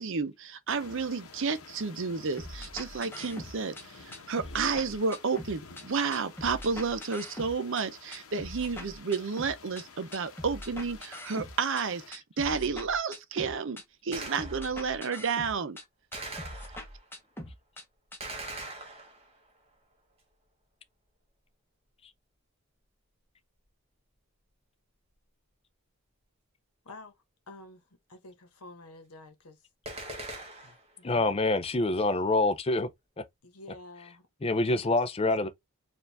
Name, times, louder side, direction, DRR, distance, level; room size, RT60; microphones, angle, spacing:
voice 1, 0.0-15.8, right 5 dB, 55° right, 0.6 m, -31 dB
sound 1, 0.7-12.1, left 5 dB, 70° left, 0.9 m, -51 dB
sound 2, 2.4-3.8 4.1-5.8 6.1-7.8 8.1-9.8 10.1-11.8 12.1-13.8 14.1-15.8 16.1-17.8 18.1-18.2, left 1 dB, 10° left, 0.9 m, -42 dB
Gunshot gunfire, 14.1-14.9 16.1-17.1 18.2-19.5 29.9-30.9, right 2 dB, 30° right, 1.2 m, -41 dB
voice 2, 26.8-27.2 27.5-27.8 28.1-29.7 30.6-31.4 33.4-34.9, left 2 dB, 85° left, 1.2 m, -50 dB
voice 3, 31.0-32.9 33.2-33.3 34.4-35.5, left 2 dB, 25° left, 0.4 m, -26 dB
4.6 x 2.5 x 3.4 m
head